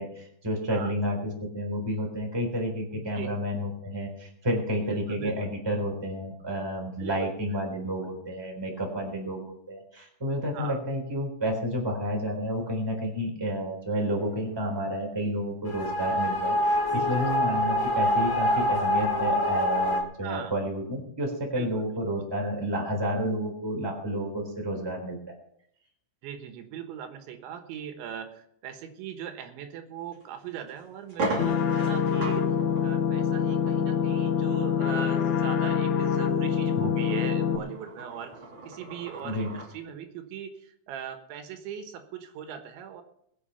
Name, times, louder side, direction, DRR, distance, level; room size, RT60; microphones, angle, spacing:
voice 1, 0.0-25.2 36.7-36.9 39.2-39.5, equal, 5° right, 1 dB, 3.0 m, -30 dB
voice 2, 2.9-3.3 4.9-5.3 7.0-7.1 10.5-10.8 16.9-17.2 18.5-18.6 20.2-20.5 21.6-21.7 22.2-22.3 26.2-32.4 32.8-38.3 38.7-43.0, right 8 dB, 80° right, 6 dB, 3.7 m, -39 dB
sound 1, 15.7-20.0, left 1 dB, 45° left, 1.4 m, -25 dB
sound 2, 30.1-30.2 30.7-30.8 31.1-39.7, right 2 dB, 30° right, 3.7 m, -39 dB
sound 3, 31.4-37.6, left 7 dB, 75° left, 1.7 m, -25 dB
21.0 x 8.2 x 5.7 m, 0.71 s
omnidirectional pair, 5.2 m